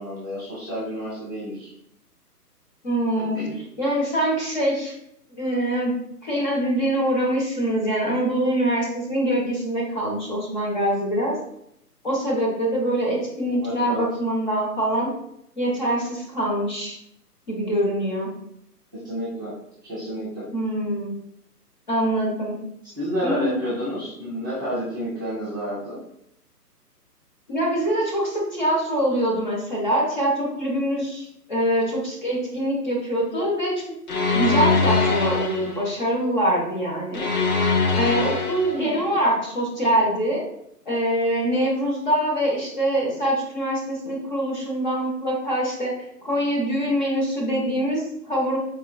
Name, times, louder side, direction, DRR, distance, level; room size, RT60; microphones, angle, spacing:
voice 1, 0.0-1.7 3.1-3.6 13.6-14.0 19.0-19.5 19.8-20.5 23.0-26.0 38.7-39.1, equal, 15° right, -14 dB, 0.6 m, -30 dB
voice 2, 2.8-3.4 3.8-4.9 5.3-5.9 6.2-11.4 12.0-15.1 15.6-17.0 17.5-18.3 20.5-21.1 21.9-22.6 23.2-23.6 27.5-33.8 34.3-37.3 37.9-40.4 40.9-45.9 46.2-48.6, right 1 dB, 30° left, -4 dB, 0.8 m, -24 dB
sound 1, 34.1-35.8 37.1-38.9, left 4 dB, 65° left, 0.8 m, -22 dB
4.3 x 2.3 x 2.2 m, 0.74 s
hypercardioid pair, 155°, 48 cm